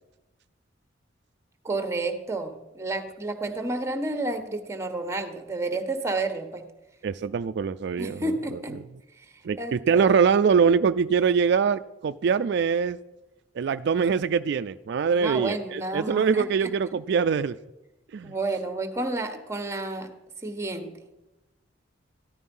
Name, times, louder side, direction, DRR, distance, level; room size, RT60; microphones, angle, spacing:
voice 1, 1.6-6.6 8.0-8.8 9.2-9.3 9.6-10.1 15.2-16.7 18.2-20.1 20.4-20.9, right 2 dB, 15° right, 7 dB, 1.3 m, -30 dB
voice 2, 7.0-8.8 9.4-13.0 13.6-17.6 18.1-18.3, right 6 dB, 65° right, 11 dB, 0.4 m, -23 dB
14.5 x 11.5 x 5.4 m, 1.0 s
head